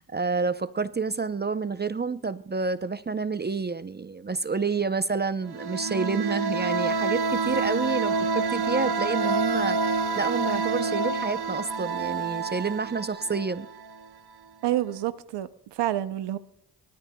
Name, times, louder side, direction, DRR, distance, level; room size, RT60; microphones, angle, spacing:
voice 1, 0.0-13.7, right 4 dB, 25° right, 0.6 m, -29 dB
sound 1, 5.4-14.0, right 4 dB, 65° right, 1.0 m, -28 dB
voice 2, 14.6-16.4, right 13 dB, 85° right, 0.6 m, -28 dB
24.5 x 13.0 x 2.2 m
cardioid pair, 55°, 41 cm